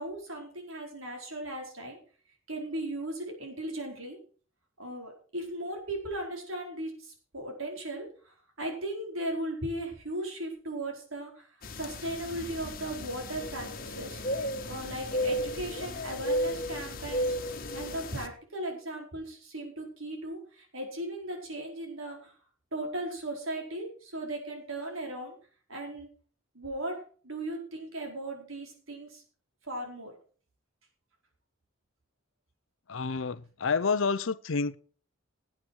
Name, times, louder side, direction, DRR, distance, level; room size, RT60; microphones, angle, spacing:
voice 1, 0.0-2.0 2.5-4.2 4.8-11.5 11.8-14.2 14.7-17.4 17.7-22.3 22.7-25.4 25.7-26.1 26.5-27.0 27.2-29.2 29.7-30.1, right 1 dB, 80° right, 4.6 m, -37 dB
sound 1, 11.6-18.3, equal, 45° left, 1.5 m, -34 dB
voice 2, 32.9-34.8, left 4 dB, 70° left, 0.6 m, -29 dB
18.0 x 8.6 x 4.7 m
head